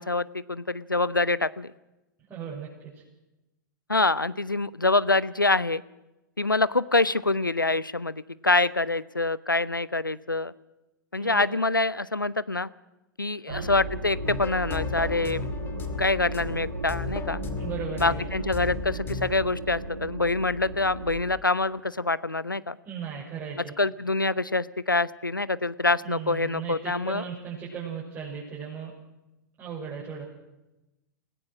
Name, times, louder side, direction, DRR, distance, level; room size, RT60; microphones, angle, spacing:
voice 1, 0.0-1.7 3.9-5.8 6.4-10.5 11.1-12.7 13.2-15.5 16.0-17.4 18.0-22.8 23.8-27.2, left 2 dB, 90° left, 19 dB, 0.6 m, -25 dB
voice 2, 2.3-3.0 11.2-11.5 13.5-13.7 17.6-18.3 22.8-23.7 26.0-28.9 29.6-30.3, right 7 dB, 20° right, -6 dB, 6.4 m, -37 dB
sound 1, 13.5-21.3, right 1 dB, 80° right, 2.5 m, -35 dB
sound 2, 14.2-19.3, left 5 dB, 20° left, 2.2 m, -37 dB
28.5 x 17.5 x 6.2 m, 0.98 s
figure-of-eight pair, 100°, 11 cm